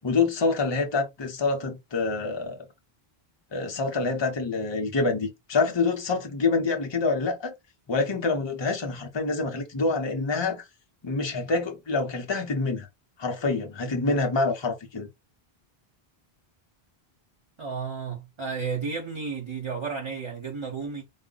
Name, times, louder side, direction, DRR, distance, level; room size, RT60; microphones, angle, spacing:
voice 1, 0.0-2.6 3.5-7.5 7.9-10.6 11.0-12.9 13.2-15.1, left 3 dB, 30° left, 0.7 m, -26 dB
voice 2, 17.6-21.0, right 5 dB, 30° right, 0.9 m, -32 dB
4.1 x 2.1 x 3.8 m
omnidirectional pair, 1.0 m